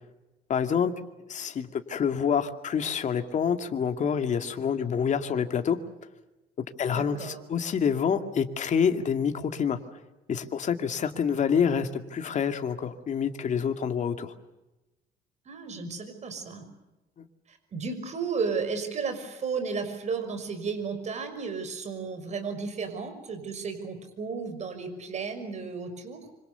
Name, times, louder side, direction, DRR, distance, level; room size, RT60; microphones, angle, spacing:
voice 1, 0.5-0.9 1.3-5.8 6.8-9.8 10.3-14.3 17.2-17.3, left 7 dB, 45° left, 7 dB, 2.3 m, -27 dB
voice 2, 6.9-7.4 15.5-16.6 17.5-26.2, right 5 dB, 45° right, 8 dB, 5.9 m, -33 dB
26.5 x 26.5 x 7.0 m, 1.0 s
cardioid pair, 110°, 17 cm